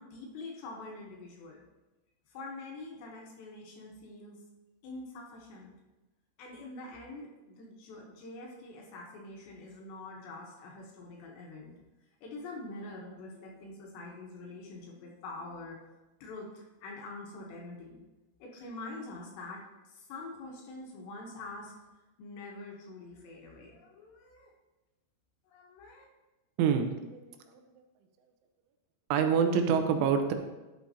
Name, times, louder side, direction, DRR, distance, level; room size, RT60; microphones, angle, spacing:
voice 1, 0.0-1.6 2.3-4.4 4.8-5.7 6.4-11.7 12.2-15.8 16.2-18.0 18.4-21.7 22.2-24.5 25.5-26.0, left 2 dB, 70° left, -1 dB, 3.1 m, -45 dB
voice 2, 26.6-27.6 29.1-30.3, right 6 dB, 80° right, 6 dB, 3.1 m, -27 dB
12.0 x 8.0 x 2.8 m, 1.1 s
omnidirectional pair, 5.7 m